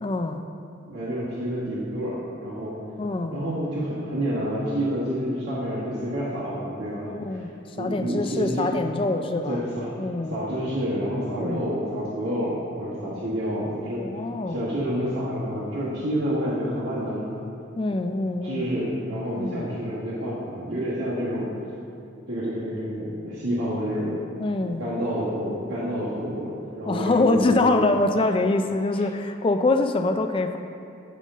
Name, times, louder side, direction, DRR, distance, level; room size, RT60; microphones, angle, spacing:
voice 1, 0.0-0.4 3.0-3.4 7.0-7.5 7.8-9.6 10.0-10.4 11.3-11.6 14.0-14.6 17.8-18.7 19.4-19.7 24.4-24.8 26.9-30.6, left 2 dB, 25° left, 6 dB, 0.3 m, -24 dB
voice 2, 0.9-2.8 3.3-7.4 7.8-8.7 9.5-9.9 10.3-14.0 14.5-17.3 18.4-21.5 22.3-24.3 24.8-27.8 28.9-29.0, equal, 85° right, -11 dB, 1.5 m, -28 dB
9.8 x 5.4 x 3.6 m, 2.7 s
head